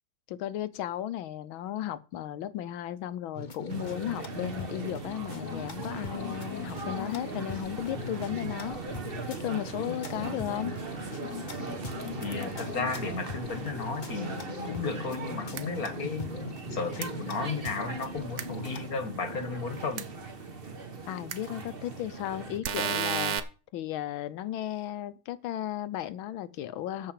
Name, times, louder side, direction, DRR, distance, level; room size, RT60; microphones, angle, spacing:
voice 1, 0.3-8.8 9.4-10.7 21.1-23.3 23.7-27.1, left 12 dB, 75° left, 1.6 m, -35 dB
sound 1, 3.3-18.9, left 3 dB, 30° left, 0.9 m, -41 dB
sound 2, 3.7-22.6, right 3 dB, 30° right, 1.3 m, -39 dB
voice 2, 12.2-16.3 16.7-20.1, left 4 dB, 50° left, 1.6 m, -34 dB
sound 3, 15.5-15.6 17.0-17.1 18.4-18.5 20.0-20.1 21.3-21.4 22.6-23.4, right 7 dB, 55° right, 1.2 m, -30 dB
13.5 x 5.6 x 7.5 m
omnidirectional pair, 2.2 m